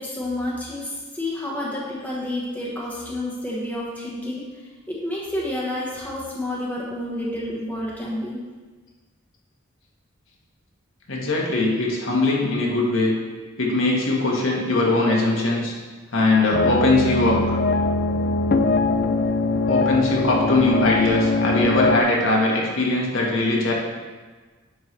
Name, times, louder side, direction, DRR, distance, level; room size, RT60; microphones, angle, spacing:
voice 1, 0.0-4.5 4.9-8.4, left 1 dB, 10° left, -5 dB, 1.2 m, -29 dB
voice 2, 11.1-13.1 13.6-15.7 16.1-17.6 19.7-23.7, left 2 dB, 75° left, -3 dB, 1.5 m, -21 dB
sound 1, 16.5-22.0, left 3 dB, 50° left, 0.4 m, -21 dB
10.0 x 4.5 x 3.3 m, 1.3 s
head